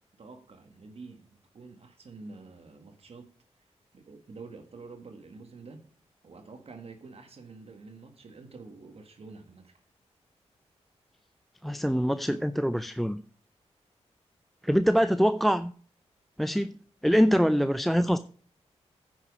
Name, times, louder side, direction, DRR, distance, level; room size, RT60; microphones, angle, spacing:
voice 1, 0.2-1.3 1.5-3.3 3.6-3.7 3.9-5.8 6.2-9.7, right 4 dB, 60° right, 5 dB, 1.6 m, -47 dB
voice 2, 11.6-13.2 14.6-15.7 16.4-16.7 17.0-18.2, equal, ahead, 12 dB, 0.4 m, -24 dB
9.9 x 6.3 x 4.8 m, 0.44 s
cardioid pair, 70°, 12 cm